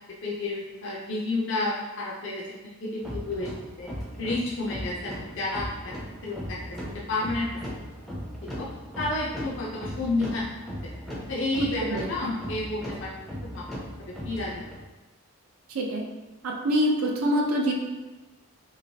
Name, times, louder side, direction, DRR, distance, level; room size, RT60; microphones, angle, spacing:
voice 1, 0.2-3.5 3.8-3.9 4.2-5.9 6.2-6.6 7.1-7.5 8.4-8.7 9.0-10.5 10.8-10.9 11.3-11.8 12.1-13.1 13.5-13.7 14.0-14.5, left 2 dB, 55° left, -5 dB, 0.5 m, -30 dB
sound 1, 3.0-14.8, equal, ahead, 0.4 m, -38 dB
voice 2, 11.5-12.3 15.7-16.0 16.4-17.7, equal, 80° right, 1 dB, 0.5 m, -26 dB
3.0 x 2.9 x 2.7 m, 1.1 s
head